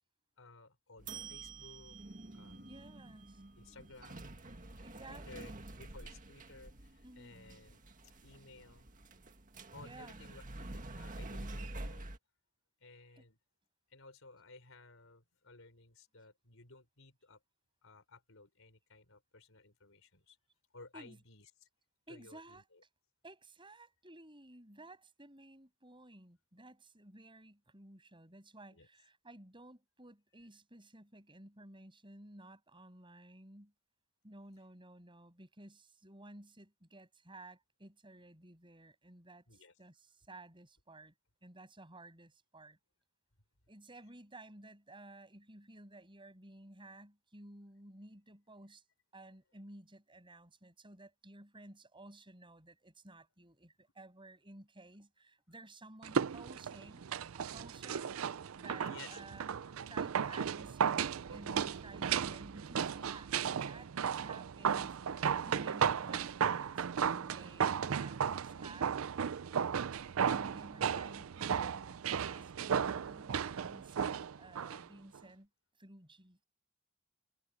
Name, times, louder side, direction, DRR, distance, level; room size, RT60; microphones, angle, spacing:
voice 1, 0.4-2.0 2.3-3.1 3.6-4.4 5.1-7.8 8.2-8.9 9.7-12.1 12.8-13.4 13.9-17.4 17.8-20.4 20.7-21.7 22.1-22.8 28.7-28.9 39.5-39.7 58.7-59.2 65.0-65.1, left 3 dB, 65° left, 5.4 m, -57 dB
sound 1, 1.0-12.2, right 2 dB, 40° right, 1.9 m, -48 dB
voice 2, 2.7-3.4 4.8-5.7 7.0-7.4 9.8-10.3 13.2-13.3 20.9-21.2 22.1-22.6 23.2-33.7 34.2-41.1 41.4-42.8 43.7-48.8 49.1-57.1 57.4-58.1 58.6-69.0 70.1-75.5 75.8-76.4, right 2 dB, 25° right, 7.3 m, -55 dB
sound 2, 56.0-74.8 75.1-75.2, right 7 dB, 75° right, 0.5 m, -35 dB
head